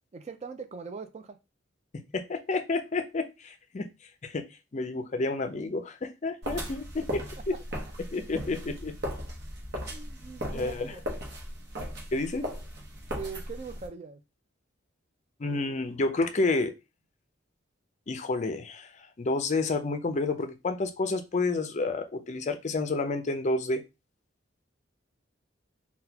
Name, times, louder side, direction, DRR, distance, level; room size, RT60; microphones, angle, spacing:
voice 1, 0.1-1.4 7.2-7.3 8.1-8.3 9.9-11.0 13.1-14.2, right 5 dB, 35° right, 8 dB, 0.4 m, -41 dB
voice 2, 2.1-3.9 4.2-4.4 4.7-7.2 8.1-8.9 10.5-10.9 12.1-12.4 15.4-16.7 18.1-23.8, left 3 dB, 35° left, 8 dB, 0.4 m, -30 dB
sound 1, 6.4-13.9, equal, 55° right, 0.9 m, -37 dB
3.9 x 2.2 x 2.7 m, 0.26 s
head